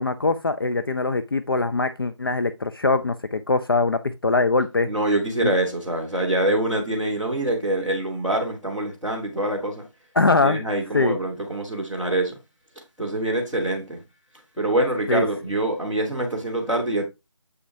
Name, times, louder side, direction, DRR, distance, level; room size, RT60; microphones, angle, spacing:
voice 1, 0.0-4.9 10.2-10.6 10.9-11.2 15.1-15.2, left 3 dB, 45° left, 0.5 m, -22 dB
voice 2, 4.9-9.8 10.3-12.4 13.0-14.0 14.6-17.0, right 1 dB, 5° left, 1.1 m, -25 dB
7.8 x 6.2 x 2.7 m
figure-of-eight pair, 170°, 16 cm